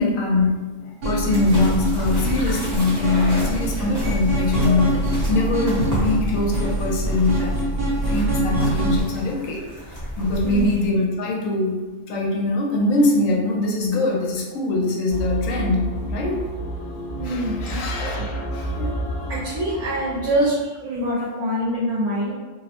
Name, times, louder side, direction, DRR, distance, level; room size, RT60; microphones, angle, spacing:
voice 1, 0.0-7.6 8.1-9.6 10.2-11.8 12.1-16.4 17.2-18.7, left 2 dB, 85° left, -1 dB, 1.0 m, -22 dB
sound 1, 1.0-9.0, right 1 dB, 50° right, 1.0 m, -24 dB
sound 2, 1.2-10.9, equal, 15° right, 0.7 m, -31 dB
sound 3, 15.1-20.4, right 1 dB, 35° left, 0.6 m, -30 dB
voice 2, 17.2-18.3 18.8-18.9 19.3-22.3, equal, 70° right, -7 dB, 0.9 m, -25 dB
2.5 x 2.0 x 2.8 m, 1.3 s
omnidirectional pair, 1.4 m